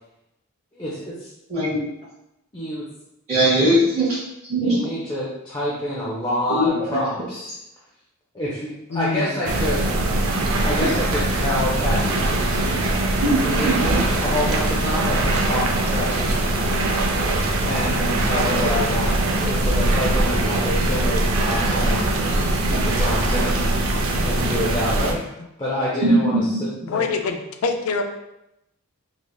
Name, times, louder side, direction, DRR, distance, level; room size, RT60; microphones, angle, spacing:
voice 1, 0.7-1.3 2.5-2.9 4.6-7.5 8.3-9.9 10.6-12.9 13.4-16.8 17.6-23.8 24.2-25.2 25.6-26.6 26.9-27.1, left 1 dB, 20° left, -6 dB, 0.5 m, -27 dB
voice 2, 1.5-1.8 3.3-4.1 4.5-4.8 6.5-7.0 13.2-13.7 26.0-26.9, right 1 dB, 30° right, -13 dB, 1.5 m, -20 dB
voice 3, 8.9-9.4 18.3-19.0 26.9-27.4 27.6-28.0, left 4 dB, 85° left, 5 dB, 0.4 m, -26 dB
sound 1, 9.4-25.1, right 2 dB, 65° right, 0.5 m, -22 dB
3.5 x 3.3 x 2.3 m, 0.87 s
head